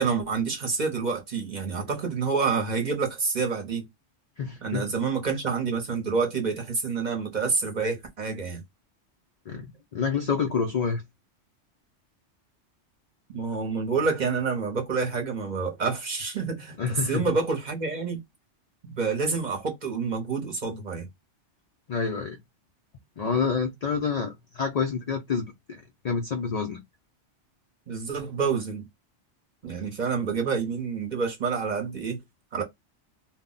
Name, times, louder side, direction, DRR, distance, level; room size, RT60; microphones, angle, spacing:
voice 1, 0.0-3.8 4.6-8.6 13.3-16.7 17.1-18.2 18.8-21.1 27.9-28.8 29.6-32.2 32.5-32.6, right 5 dB, 45° right, 0.7 m, -28 dB
voice 2, 4.4-4.9 9.5-11.0 16.8-17.3 21.9-22.4 23.2-26.8, left 5 dB, 75° left, 0.3 m, -28 dB
2.1 x 2.0 x 3.7 m
omnidirectional pair, 1.2 m